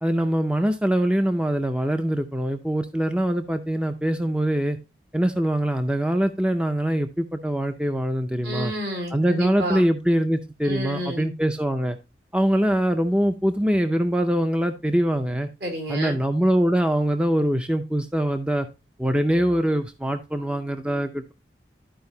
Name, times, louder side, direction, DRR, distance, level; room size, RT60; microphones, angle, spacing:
voice 1, 0.0-4.8 5.1-8.7 9.1-12.0 12.3-15.5 15.9-18.7 19.0-21.3, right 1 dB, 5° right, 7 dB, 0.4 m, -23 dB
voice 2, 8.4-9.8 10.6-11.3 15.6-16.2, right 1 dB, 70° right, 2 dB, 3.0 m, -30 dB
12.5 x 4.8 x 2.7 m, 0.27 s
head